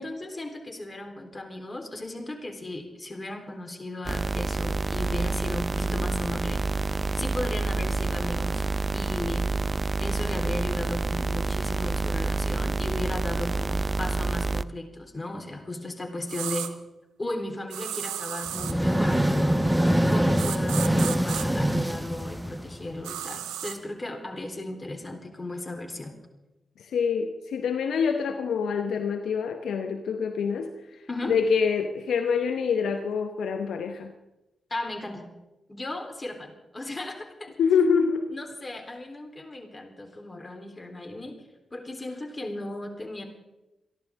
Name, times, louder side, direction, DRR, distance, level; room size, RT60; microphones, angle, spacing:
voice 1, 0.0-6.6 7.1-8.6 8.9-9.5 10.0-16.7 17.2-19.6 20.1-26.1 31.1-31.4 34.7-35.3 35.7-37.6 38.3-41.4 41.7-43.2, left 2 dB, 30° left, 4 dB, 3.6 m, -36 dB
sound 1, 4.0-14.6, right 3 dB, 35° right, 0.5 m, -28 dB
sound 2, 16.3-16.7 17.7-18.8 20.4-21.5 23.0-23.8, right 11 dB, 90° right, 0.8 m, -34 dB
sound 3, 18.5-23.0, equal, 5° right, 1.1 m, -24 dB
voice 2, 26.8-30.7 31.3-34.1 37.6-38.3, left 6 dB, 80° left, 6 dB, 0.9 m, -26 dB
29.0 x 11.0 x 3.6 m, 0.97 s
supercardioid pair, 45°, 0 cm